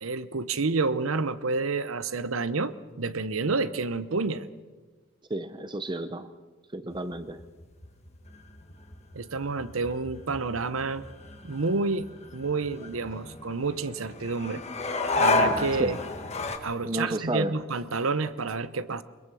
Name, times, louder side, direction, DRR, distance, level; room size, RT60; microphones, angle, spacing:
voice 1, 0.0-4.5 9.1-11.1 11.4-12.1 12.3-14.6 15.2-16.0 16.6-19.0, right 3 dB, 85° right, 14 dB, 0.9 m, -29 dB
voice 2, 5.3-6.3 6.7-7.4 15.8-16.0 16.8-17.5, right 1 dB, 20° right, 11 dB, 0.7 m, -31 dB
sound 1, 6.9-16.6, left 2 dB, 30° left, 1.5 m, -32 dB
22.0 x 22.0 x 6.2 m, 1.3 s
head